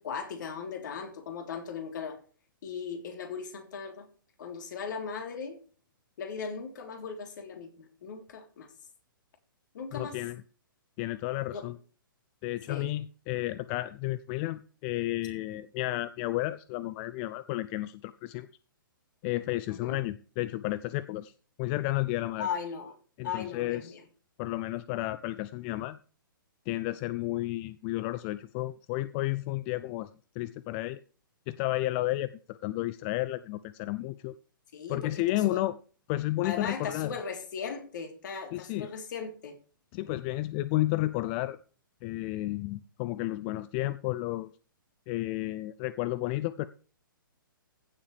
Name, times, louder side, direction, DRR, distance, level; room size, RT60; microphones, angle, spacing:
voice 1, 0.0-2.2 2.6-4.1 4.4-5.6 6.2-8.7 9.7-10.2 11.5-11.6 12.7-12.9 19.7-20.0 22.4-22.9 23.2-24.0 34.7-35.6 36.4-39.6, left 6 dB, 60° left, 3.5 m, -38 dB
voice 2, 9.9-10.4 11.0-11.8 12.4-18.5 19.2-21.3 21.6-22.5 23.2-24.0 24.4-26.0 26.7-30.1 30.4-31.0 31.5-34.3 34.9-35.8 36.1-37.2 38.5-38.9 39.9-41.6 42.0-44.5 45.1-46.7, left 17 dB, 30° left, 0.4 m, -32 dB
15.5 x 7.3 x 3.4 m
hypercardioid pair, 125°, 12 cm